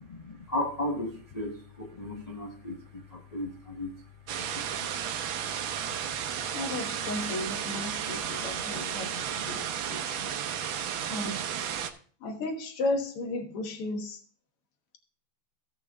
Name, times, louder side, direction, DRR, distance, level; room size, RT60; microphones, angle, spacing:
voice 1, 0.0-4.0 4.4-5.0 7.2-9.6, left 1 dB, 30° left, 0 dB, 0.8 m, -37 dB
sound 1, 4.3-11.9, right 9 dB, 70° right, 1.5 m, -33 dB
voice 2, 6.5-9.1 9.5-9.6 9.9-10.4 10.8-11.4 12.2-14.2, left 2 dB, 85° left, 5 dB, 2.3 m, -34 dB
16.5 x 5.5 x 3.5 m, 0.43 s
omnidirectional pair, 2.4 m